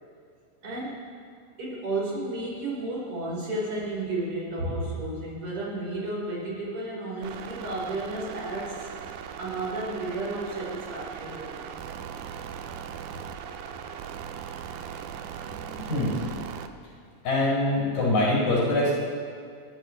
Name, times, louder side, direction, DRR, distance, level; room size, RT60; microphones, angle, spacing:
voice 1, 0.6-1.0 1.6-8.9 9.4-12.0, right 2 dB, 35° right, -5 dB, 5.1 m, -32 dB
sound 1, 7.2-16.7, right 8 dB, 80° right, 1.8 m, -39 dB
voice 2, 15.5-16.3 17.2-18.9, left 1 dB, 85° left, -9 dB, 6.8 m, -24 dB
28.0 x 13.5 x 3.3 m, 2.2 s
omnidirectional pair, 4.3 m